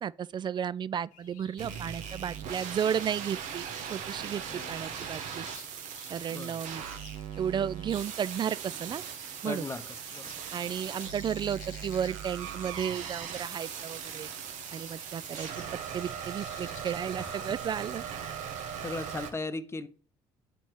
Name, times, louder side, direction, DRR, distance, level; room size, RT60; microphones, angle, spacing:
voice 1, 0.0-4.4 4.7-5.5 6.1-6.8 7.4-9.0 9.4-9.6 10.5-14.3 14.7-15.5 15.9-18.0, right 8 dB, 35° right, 0.3 m, -33 dB
sound 1, 1.1-16.9, left 9 dB, 70° left, 0.9 m, -55 dB
sound 2, 1.6-19.3, right 8 dB, 65° right, 1.0 m, -39 dB
sound 3, 3.9-18.2, equal, 85° right, 3.2 m, -61 dB
voice 2, 4.5-4.8 6.3-6.7 9.4-10.4 17.2-17.6 18.8-19.9, left 3 dB, 20° left, 0.8 m, -38 dB
6.7 x 4.3 x 4.7 m
hypercardioid pair, 65°, 13 cm